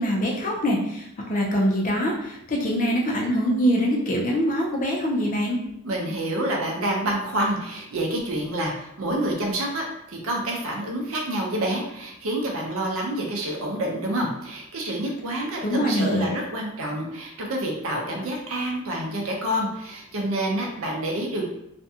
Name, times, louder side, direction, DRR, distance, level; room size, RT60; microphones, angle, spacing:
voice 1, 0.0-5.6 15.6-16.4, equal, 35° left, -1 dB, 0.5 m, -24 dB
voice 2, 5.8-21.4, right 1 dB, 65° right, 0 dB, 0.6 m, -28 dB
2.5 x 2.2 x 2.7 m, 0.78 s
head